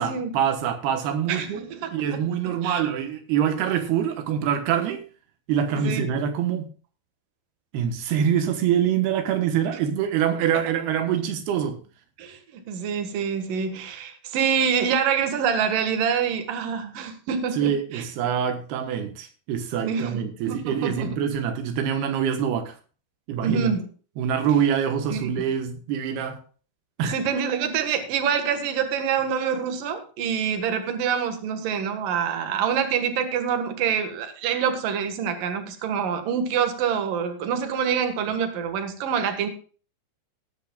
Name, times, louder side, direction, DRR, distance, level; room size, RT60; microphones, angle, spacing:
voice 1, 0.0-5.0 5.5-6.7 7.7-11.8 17.5-22.8 23.3-23.7 24.2-26.4 27.0-27.2, right 8 dB, 85° right, 3.1 m, -25 dB
voice 2, 1.3-2.2 2.6-2.8 5.8-6.1 12.2-18.0 19.8-21.2 23.4-23.9 25.1-25.3 27.0-39.5, right 7 dB, 65° right, 3.1 m, -26 dB
18.0 x 10.0 x 2.4 m
omnidirectional pair, 4.5 m